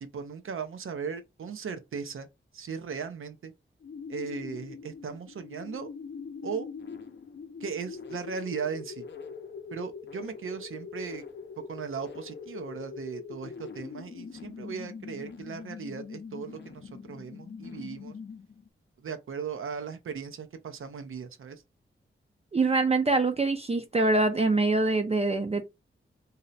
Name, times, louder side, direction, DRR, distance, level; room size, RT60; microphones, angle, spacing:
voice 1, 0.0-2.3 2.5-3.5 4.1-5.9 6.4-6.7 7.6-9.1 9.7-11.2 11.7-18.1 19.0-21.6, right 6 dB, 80° right, 0.5 m, -37 dB
sound 1, 3.8-18.7, left 5 dB, 55° left, 0.5 m, -43 dB
voice 2, 22.5-25.6, right 3 dB, 30° right, 0.4 m, -24 dB
2.7 x 2.0 x 3.9 m
wide cardioid pair, 90°, 21 cm